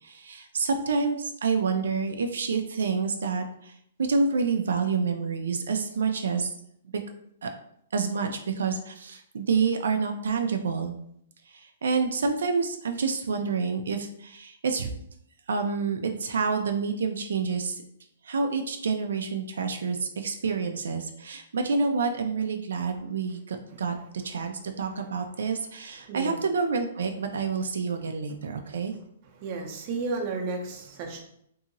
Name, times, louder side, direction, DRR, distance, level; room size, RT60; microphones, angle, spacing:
voice 1, 0.0-6.5 7.4-7.5 7.9-10.9 11.5-14.9 15.5-17.8 18.2-23.9 24.2-28.9, right 5 dB, 85° right, 5 dB, 0.3 m, -28 dB
voice 2, 26.1-26.4 29.4-31.2, right 3 dB, 35° right, 1 dB, 0.5 m, -32 dB
2.8 x 2.7 x 2.6 m, 0.72 s
hypercardioid pair, 160°, 0 cm